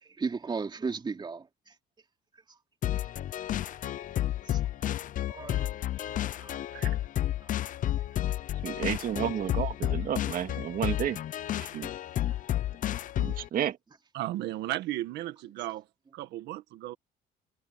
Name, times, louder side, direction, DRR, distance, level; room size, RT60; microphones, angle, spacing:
voice 1, 0.0-1.7 3.3-3.4 4.4-4.9 5.3-5.7 5.9-6.6 7.4-7.6 12.2-12.4 15.6-15.7, right 4 dB, 25° right, 3.0 m, -37 dB
sound 1, 2.8-13.5, left 12 dB, 50° left, 0.7 m, -31 dB
voice 2, 8.6-11.2 11.6-11.9 13.2-13.8, right 10 dB, 55° right, 2.3 m, -31 dB
voice 3, 14.1-15.8 16.1-17.0, right 15 dB, 85° right, 1.6 m, -35 dB
cardioid pair, 110°, 17 cm